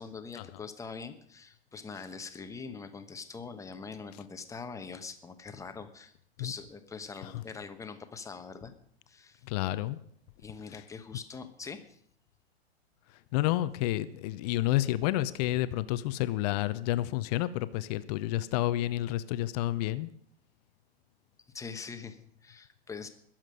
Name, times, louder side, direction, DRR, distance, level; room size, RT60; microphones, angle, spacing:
voice 1, 0.0-6.1 6.4-8.7 9.1-9.4 10.4-12.0 21.5-23.1, left 5 dB, 10° left, 8 dB, 1.1 m, -43 dB
voice 2, 9.4-10.0 13.3-20.1, left 15 dB, 40° left, 15 dB, 0.7 m, -30 dB
21.5 x 7.5 x 5.2 m, 0.66 s
hypercardioid pair, 110°, 32 cm